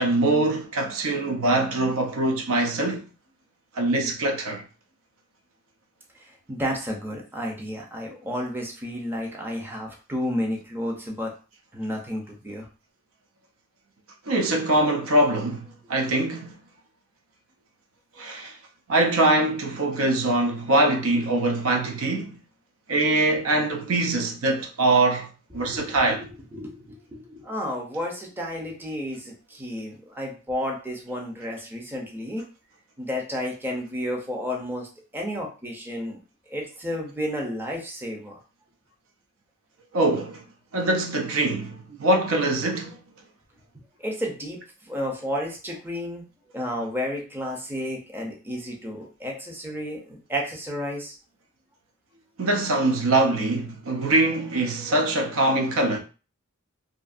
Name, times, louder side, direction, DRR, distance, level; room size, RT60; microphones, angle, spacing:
voice 1, 0.0-3.0 3.8-4.6 14.3-16.6 18.2-18.6 18.9-22.4 22.9-25.3 25.5-26.2 39.9-40.4 40.7-43.0 52.4-56.0, right 2 dB, 85° right, 0.5 m, -23 dB
voice 2, 6.2-11.3 11.7-12.7 25.6-32.4 33.0-34.9 35.1-36.2 36.5-38.4 44.0-44.6 44.9-46.2 46.5-51.2, equal, 10° right, 0.5 m, -32 dB
2.7 x 2.5 x 2.4 m
head